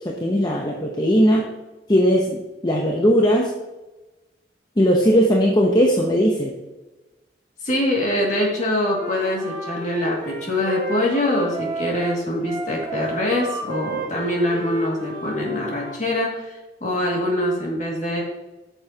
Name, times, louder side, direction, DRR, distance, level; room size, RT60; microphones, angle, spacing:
voice 1, 0.0-1.5 1.9-3.5 4.8-6.5, equal, 25° left, 0 dB, 0.7 m, -18 dB
voice 2, 7.6-18.2, left 1 dB, 45° left, -2 dB, 2.1 m, -24 dB
Wind instrument woodwind instrument, 8.9-16.0, right 3 dB, 25° right, 1.3 m, -33 dB
9.1 x 6.8 x 2.8 m, 1.1 s
head